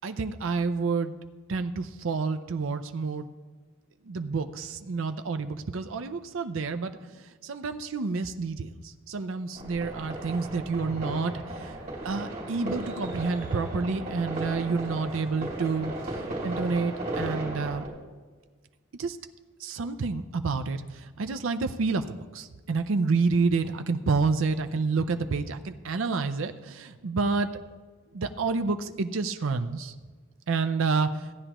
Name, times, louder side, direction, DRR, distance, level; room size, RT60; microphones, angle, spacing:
voice 1, 0.0-1.2 1.5-3.3 4.1-11.7 12.0-17.9 19.0-19.2 19.6-27.5 28.1-29.9 30.5-31.3, right 4 dB, 70° right, 8 dB, 0.5 m, -29 dB
sound 1, 9.5-17.9, right 1 dB, 40° right, 3.1 m, -35 dB
16.0 x 9.8 x 3.0 m, 1.4 s
head